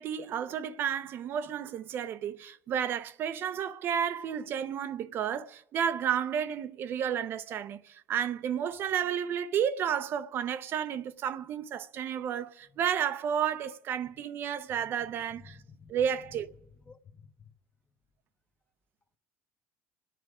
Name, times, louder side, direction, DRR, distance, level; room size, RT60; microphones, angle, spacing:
voice 1, 0.0-15.6 15.9-16.5, right 8 dB, 50° right, 0.7 m, -32 dB
voice 2, 14.9-15.9 16.9-17.3, left 5 dB, 25° left, 1.1 m, -53 dB
27.0 x 9.2 x 4.9 m
cardioid pair, 120°, 5 cm